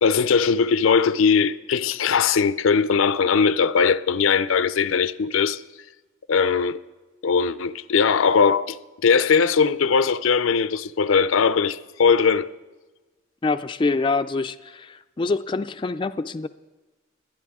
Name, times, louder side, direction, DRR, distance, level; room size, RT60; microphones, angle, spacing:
voice 1, 0.0-5.6 6.3-6.8 7.2-8.8 9.0-12.5, left 5 dB, 85° left, 0.5 m, -20 dB
voice 2, 13.4-16.5, left 3 dB, 25° left, 0.3 m, -25 dB
21.0 x 11.5 x 3.6 m
head